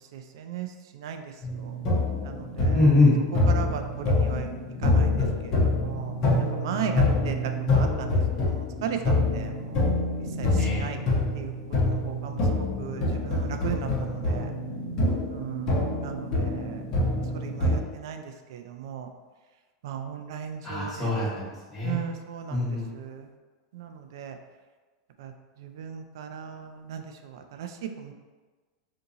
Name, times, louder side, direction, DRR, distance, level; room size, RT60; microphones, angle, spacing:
voice 1, 0.1-0.7 0.9-1.2 2.2-2.8 3.5-4.5 4.8-5.2 5.8-6.1 6.5-7.4 7.7-9.8 10.4-11.0 11.4-11.5 11.8-12.4 12.8-14.5 15.3-16.8 17.3-18.2 18.5-19.1 19.8-21.1 21.8-22.7 23.0-23.2 23.7-24.3 25.2-25.3 25.6-27.0 27.6-27.7 28.0-28.1, right 8 dB, 75° right, 6 dB, 0.4 m, -36 dB
sound 1, 1.4-17.8, left 2 dB, 35° left, 0.9 m, -26 dB
voice 2, 2.7-3.1 10.6-10.8 20.6-22.0 22.5-22.9, left 3 dB, 10° left, -10 dB, 1.3 m, -23 dB
2.8 x 2.6 x 3.8 m, 1.3 s
supercardioid pair, 145°, 2 cm